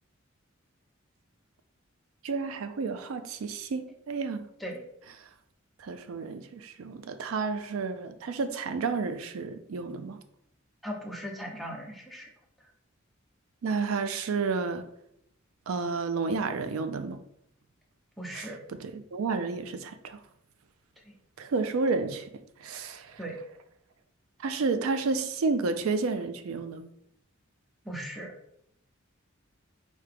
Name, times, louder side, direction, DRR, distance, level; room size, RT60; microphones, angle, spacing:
voice 1, 2.2-4.5 5.8-10.2 13.6-14.9 15.7-17.2 18.3-18.5 18.8-20.2 21.4-22.3 22.6-23.2 24.4-26.9, right 4 dB, 85° right, 9 dB, 0.4 m, -31 dB
voice 2, 10.8-12.3 18.2-18.6 23.2-23.4 27.8-28.3, equal, ahead, -1 dB, 0.7 m, -38 dB
4.5 x 2.8 x 3.4 m, 0.75 s
head